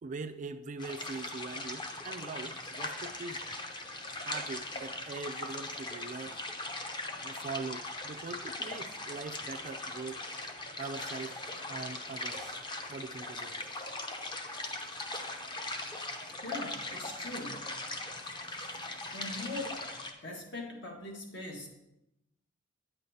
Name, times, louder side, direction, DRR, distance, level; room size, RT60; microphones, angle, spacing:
voice 1, 0.0-3.6 4.1-6.4 7.2-10.2 10.8-11.4 11.7-12.6 12.9-13.8, right 4 dB, 40° right, 9 dB, 0.3 m, -42 dB
sound 1, 0.8-20.1, left 2 dB, 25° left, 0.7 m, -40 dB
voice 2, 16.4-17.7 19.1-19.8 20.2-21.7, left 2 dB, 65° left, 0 dB, 1.5 m, -41 dB
9.2 x 7.9 x 2.8 m, 0.88 s
head